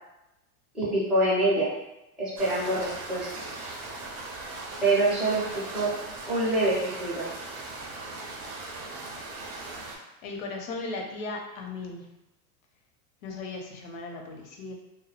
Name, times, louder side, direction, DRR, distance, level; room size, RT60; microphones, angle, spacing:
voice 1, 0.7-1.7 2.2-3.3 4.8-5.9 6.3-7.3, right 2 dB, ahead, -10 dB, 0.4 m, -25 dB
sound 1, 2.4-10.0, right 2 dB, 45° right, 0.6 m, -39 dB
voice 2, 10.2-12.1 13.2-14.7, left 3 dB, 60° left, 2 dB, 0.7 m, -37 dB
2.2 x 2.0 x 2.7 m, 0.93 s
supercardioid pair, 130°, 46 cm